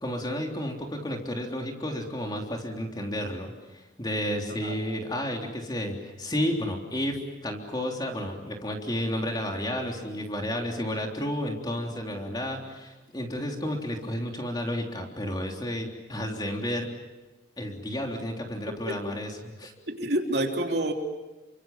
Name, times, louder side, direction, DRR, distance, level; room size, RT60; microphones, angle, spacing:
voice 1, 0.0-7.2 7.4-16.9 17.6-19.7, equal, 25° left, 1 dB, 3.5 m, -32 dB
voice 2, 19.9-20.9, right 1 dB, 60° right, 2 dB, 3.3 m, -27 dB
30.0 x 25.0 x 7.4 m, 1.1 s
head